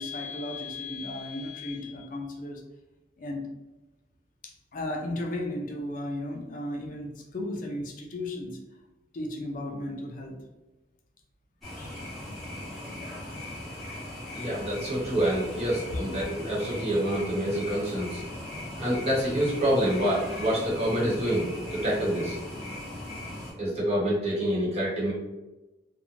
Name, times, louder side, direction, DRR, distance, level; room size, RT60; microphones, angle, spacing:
voice 1, 0.0-2.6 3.2-3.5 4.4-8.6 9.1-10.4 11.8-12.0 15.9-16.1, left 1 dB, 50° left, 2 dB, 0.4 m, -35 dB
sound 1, 11.6-23.5, left 1 dB, ahead, 0.9 m, -39 dB
voice 2, 14.3-18.2 18.8-22.4 23.6-25.1, equal, 35° right, -6 dB, 1.0 m, -27 dB
2.5 x 2.1 x 2.9 m, 1.0 s
head